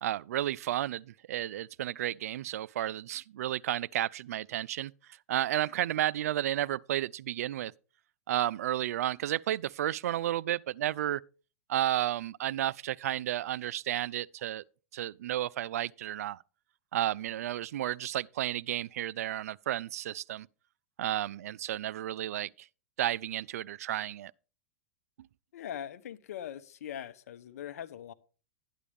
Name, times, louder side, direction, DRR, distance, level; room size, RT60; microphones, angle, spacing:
voice 1, 0.0-4.9 5.3-7.7 8.3-11.2 11.7-14.6 14.9-16.4 16.9-20.5 21.0-22.7 23.0-24.3, right 12 dB, 75° right, 0.4 m, -32 dB
voice 2, 25.5-28.1, left 10 dB, 75° left, 1.0 m, -41 dB
12.0 x 10.0 x 3.5 m
hypercardioid pair, 130°, 8 cm